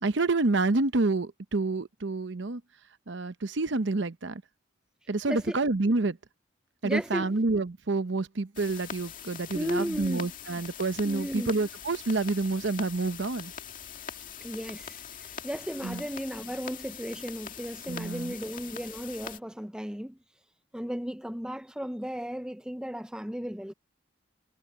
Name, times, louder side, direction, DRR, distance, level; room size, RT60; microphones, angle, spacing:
voice 1, 0.0-2.6 3.1-4.4 5.1-6.2 6.8-13.5 15.8-16.0 17.9-18.3, right 3 dB, 60° right, 0.8 m, -28 dB
voice 2, 6.8-7.3 9.5-10.3 11.0-11.5 14.4-20.2 20.7-23.7, equal, 5° right, 0.6 m, -35 dB
sound 1, 8.5-19.4, left 7 dB, 40° left, 2.2 m, -43 dB
head